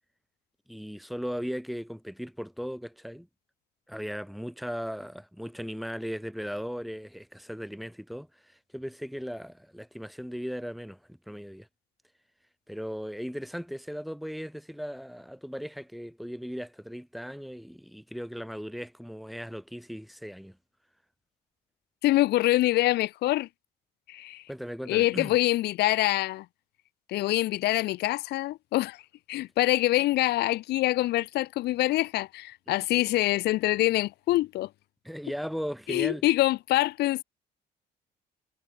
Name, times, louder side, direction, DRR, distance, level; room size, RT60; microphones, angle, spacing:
voice 1, 0.7-3.3 3.9-11.0 11.3-11.7 12.7-20.6 24.5-25.4 32.7-33.0 35.0-36.2, equal, ahead, 3.8 m, -37 dB
voice 2, 22.0-23.5 24.1-24.4 24.9-26.5 27.1-29.0 29.3-34.7 35.9-37.2, left 17 dB, 85° left, 0.9 m, -25 dB
cardioid pair, 135°, 17 cm